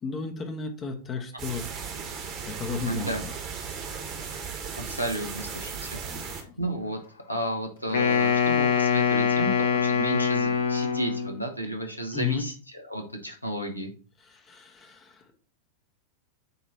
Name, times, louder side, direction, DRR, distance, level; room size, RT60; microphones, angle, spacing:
voice 1, 0.0-1.7 2.4-3.3 6.1-6.4 12.1-12.4 14.2-15.3, left 5 dB, 25° left, 5 dB, 1.0 m, -34 dB
sound 1, 1.4-6.4, right 6 dB, 40° right, 1.3 m, -36 dB
voice 2, 2.8-3.2 4.7-7.0 7.3-13.9, right 1 dB, 85° left, 4 dB, 1.1 m, -32 dB
Wind instrument woodwind instrument, 7.9-11.4, left 6 dB, 65° left, 1.1 m, -24 dB
8.1 x 3.0 x 4.2 m, 0.40 s
figure-of-eight pair, 90°, 0 cm